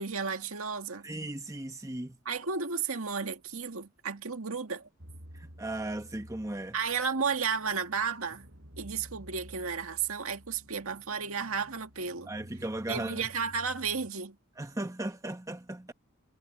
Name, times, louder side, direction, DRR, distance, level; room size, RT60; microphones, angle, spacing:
voice 1, 0.0-1.1 2.3-4.9 6.7-8.5 8.8-12.3 12.9-14.4, right 5 dB, 75° right, 2.0 m, -33 dB
voice 2, 1.0-2.2 5.3-6.8 12.3-13.3 14.6-15.9, right 1 dB, 15° right, 1.0 m, -37 dB
sound 1, 5.0-14.1, equal, 60° right, 7.3 m, -52 dB
head